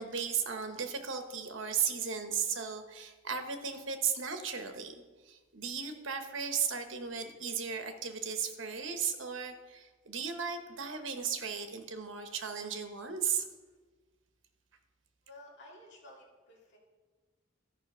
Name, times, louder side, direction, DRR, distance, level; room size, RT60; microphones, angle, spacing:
voice 1, 0.0-13.5, right 6 dB, 65° right, 7 dB, 1.0 m, -35 dB
voice 2, 15.3-16.8, left 1 dB, 60° left, -4 dB, 3.2 m, -53 dB
13.0 x 5.7 x 5.4 m, 1.3 s
head